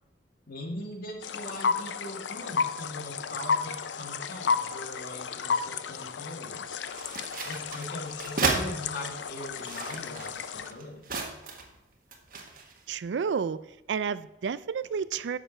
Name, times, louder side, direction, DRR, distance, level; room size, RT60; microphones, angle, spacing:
voice 1, 0.5-6.8 7.4-11.1, left 1 dB, 55° left, 2.0 m, -41 dB
sound 1, 1.2-10.7, left 5 dB, 80° left, 0.5 m, -33 dB
sound 2, 6.8-8.6 9.4-11.8 12.1-12.8, right 3 dB, 55° right, 1.5 m, -33 dB
voice 2, 12.9-13.6 13.9-15.4, right 6 dB, 80° right, 0.4 m, -30 dB
10.0 x 6.8 x 4.4 m
head